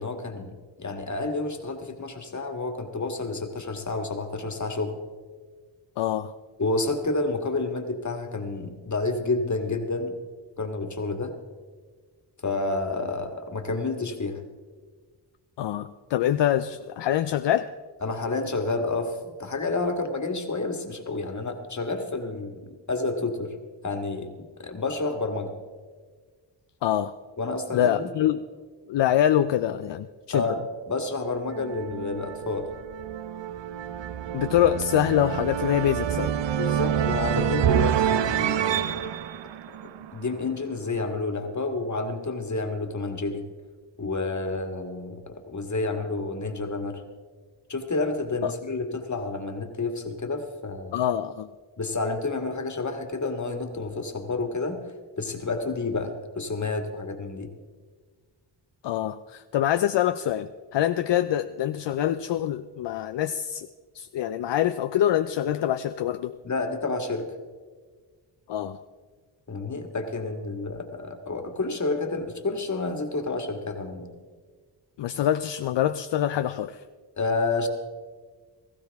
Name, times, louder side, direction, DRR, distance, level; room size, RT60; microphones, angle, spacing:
voice 1, 0.0-5.0 6.6-10.1 10.6-11.3 12.4-14.4 18.0-23.5 23.8-24.3 24.6-25.5 27.4-28.1 30.3-30.6 30.9-32.7 36.5-39.1 40.1-43.5 44.0-47.0 47.7-51.0 51.8-57.5 66.4-67.3 69.5-74.1 77.2-77.7, left 3 dB, 40° left, 5 dB, 1.9 m, -30 dB
voice 2, 6.0-6.3 15.6-17.7 26.8-27.2 27.7-28.4 28.9-30.5 34.3-36.4 48.4-48.5 50.9-51.5 58.8-63.7 63.9-66.4 68.5-68.8 75.0-76.8, left 11 dB, 70° left, 10 dB, 0.5 m, -25 dB
sound 1, 31.5-40.5, right 10 dB, 70° right, 0.7 m, -27 dB
17.5 x 14.5 x 3.5 m, 1.5 s
cardioid pair, 60°, 45 cm